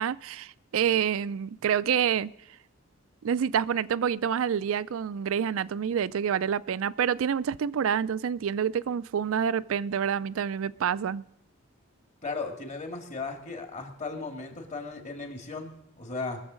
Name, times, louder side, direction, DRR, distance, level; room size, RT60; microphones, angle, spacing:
voice 1, 0.0-2.3 3.2-11.2, right 8 dB, 75° right, 0.4 m, -27 dB
voice 2, 12.2-16.4, left 3 dB, 35° left, 1.9 m, -36 dB
20.0 x 7.1 x 6.3 m
head